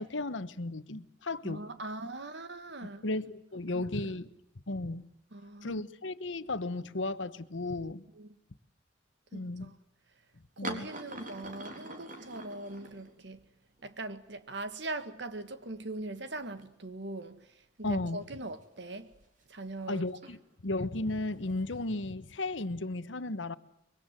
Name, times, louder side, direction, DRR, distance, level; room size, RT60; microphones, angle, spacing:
voice 1, 0.0-1.6 2.8-4.3 4.7-5.0 5.6-8.0 9.3-9.7 10.6-10.9 17.8-18.2 19.9-20.4 20.6-23.6, left 2 dB, 80° left, 1.2 m, -34 dB
voice 2, 1.4-3.0 3.7-3.9 5.3-5.8 8.2-8.3 9.3-9.7 10.6-13.4 13.8-17.4 17.8-19.1 19.5-20.0, right 2 dB, 65° right, 1.8 m, -41 dB
sound 1, 10.6-13.5 13.8-13.9 14.9-15.0 15.2-16.1 16.6-16.7 18.2-19.5 20.1-20.4 21.4-22.1, right 2 dB, 45° right, 4.0 m, -45 dB
25.0 x 23.5 x 7.6 m
head